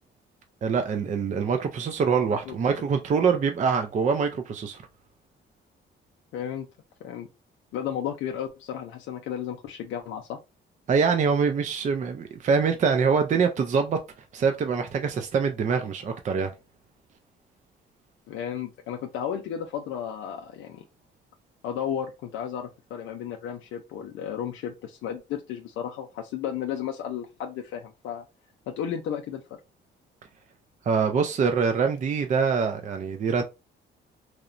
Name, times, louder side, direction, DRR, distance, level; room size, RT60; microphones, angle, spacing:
voice 1, 0.6-4.8 10.9-14.0 14.3-16.5 30.9-33.4, right 5 dB, 40° right, 0.4 m, -24 dB
voice 2, 6.3-6.7 7.0-7.3 7.7-10.4 18.3-20.8 21.6-28.2 28.7-29.4, left 9 dB, 80° left, 0.4 m, -33 dB
2.9 x 2.0 x 2.5 m
cardioid pair, 90°, 20 cm